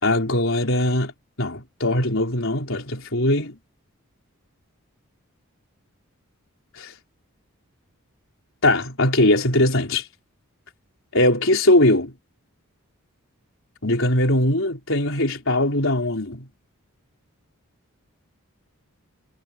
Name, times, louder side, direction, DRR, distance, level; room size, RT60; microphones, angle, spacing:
voice 1, 0.0-1.1 1.4-3.6 6.8-6.9 8.6-10.1 11.1-12.1 13.8-16.5, left 1 dB, 60° left, 4.3 m, -20 dB
head